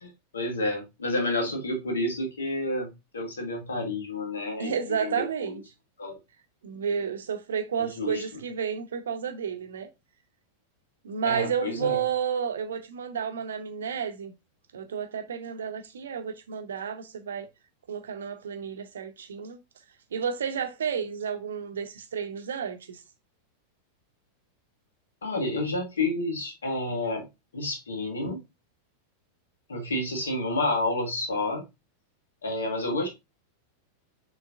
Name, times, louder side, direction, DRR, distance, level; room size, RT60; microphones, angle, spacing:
voice 1, 0.0-4.7 5.0-5.6 6.0-6.2 7.8-8.2 11.2-12.0 25.2-27.2 27.5-28.4 29.7-31.6 32.4-33.1, left 2 dB, 70° left, 1.6 m, -30 dB
voice 2, 4.6-5.6 6.6-9.9 11.0-14.3 14.7-17.5 17.9-19.6 20.1-23.0, right 7 dB, 65° right, 0.8 m, -31 dB
6.4 x 3.1 x 2.6 m
figure-of-eight pair, 90°, 0 cm